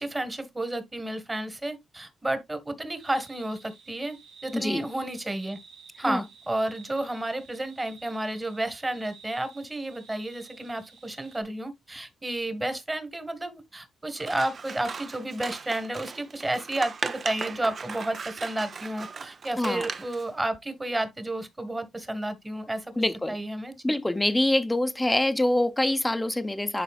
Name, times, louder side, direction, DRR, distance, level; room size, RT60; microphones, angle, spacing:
voice 1, 0.0-4.2 4.4-5.6 6.0-23.8, right 1 dB, 20° right, 1.6 m, -31 dB
sound 1, 3.0-11.4, right 5 dB, 90° right, 2.7 m, -52 dB
voice 2, 4.5-4.9 6.1-6.2 19.6-19.8 23.0-23.4 23.8-26.8, left 1 dB, 10° left, 0.7 m, -25 dB
Scissors, 14.2-20.3, right 5 dB, 50° right, 0.7 m, -37 dB
11.0 x 4.1 x 2.4 m
cardioid pair, 100°, 0 cm